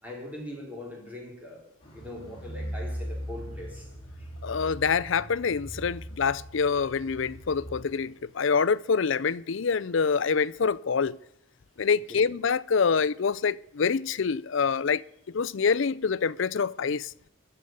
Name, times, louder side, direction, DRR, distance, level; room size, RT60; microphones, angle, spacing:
voice 1, 0.0-4.3 12.1-12.3, left 1 dB, 5° right, 4.1 m, -42 dB
Car, 1.8-8.3, equal, 25° left, 3.9 m, -40 dB
voice 2, 4.4-11.2 11.8-15.0 15.3-17.1, left 5 dB, 70° left, 0.5 m, -26 dB
14.0 x 6.8 x 9.3 m
head